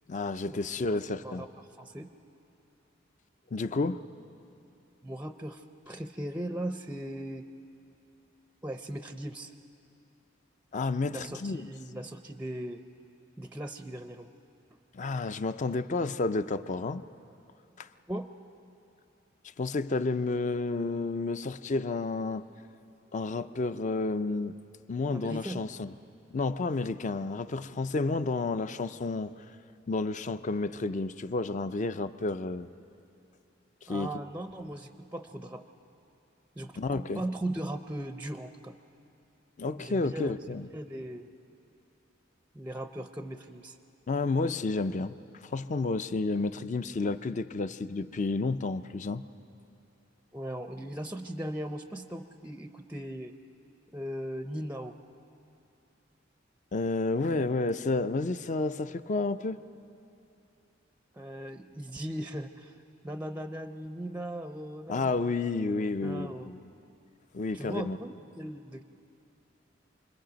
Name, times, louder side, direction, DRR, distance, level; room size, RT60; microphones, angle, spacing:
voice 1, 0.1-1.4 3.5-4.1 10.7-11.7 14.9-17.0 17.8-17.9 19.6-22.4 23.1-24.6 24.9-25.9 26.3-29.3 29.9-32.7 33.9-34.1 36.8-37.2 39.6-40.7 44.1-45.1 45.4-49.2 56.7-59.6 64.9-66.7 67.3-68.0, left 3 dB, 40° left, 12 dB, 0.5 m, -31 dB
voice 2, 1.8-2.1 5.0-7.5 8.6-9.5 11.1-12.8 13.4-14.3 15.3-15.4 18.1-18.3 25.1-25.6 33.9-35.6 36.6-38.8 39.8-40.3 40.7-41.3 42.5-43.8 50.3-53.3 53.9-54.9 61.1-62.8 63.0-65.3 66.0-66.5 67.5-68.8, right 1 dB, 10° right, 8 dB, 0.5 m, -38 dB
28.5 x 21.5 x 5.1 m, 2.7 s
head